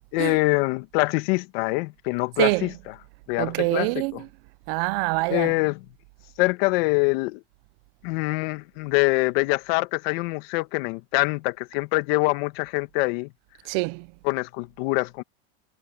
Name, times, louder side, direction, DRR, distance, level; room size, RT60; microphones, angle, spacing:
voice 1, 0.1-2.9 3.3-4.2 5.3-5.8 6.4-7.4 8.0-13.3 14.2-15.2, left 24 dB, 65° left, 1.9 m, -24 dB
voice 2, 2.4-2.7 3.4-4.3 4.7-5.5 13.7-14.1, right 26 dB, 60° right, 0.9 m, -25 dB
supercardioid pair, 120°, 32 cm